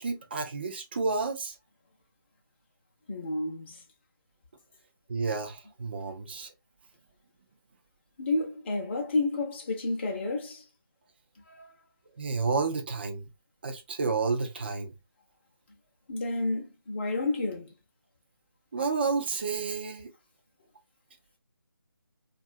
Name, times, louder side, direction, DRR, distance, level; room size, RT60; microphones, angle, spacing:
voice 1, 0.0-1.5 5.1-6.5 12.2-13.2 13.6-14.9 18.7-20.1, right 4 dB, 30° right, 0.4 m, -30 dB
voice 2, 3.1-3.8 8.2-10.7 11.5-11.7 16.1-17.7, left 2 dB, 30° left, 0.6 m, -30 dB
2.6 x 2.4 x 2.5 m
figure-of-eight pair, 155°, 12 cm